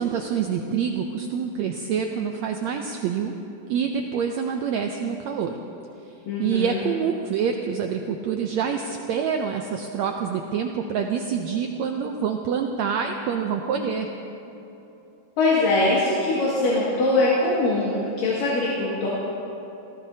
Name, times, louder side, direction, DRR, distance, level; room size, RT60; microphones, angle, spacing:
voice 1, 0.0-3.3 3.7-5.6 6.4-14.1, right 7 dB, 80° right, 3 dB, 1.6 m, -26 dB
voice 2, 6.3-6.8 15.4-19.1, left 2 dB, 80° left, -7 dB, 3.6 m, -22 dB
29.0 x 15.0 x 2.8 m, 3.0 s
omnidirectional pair, 3.9 m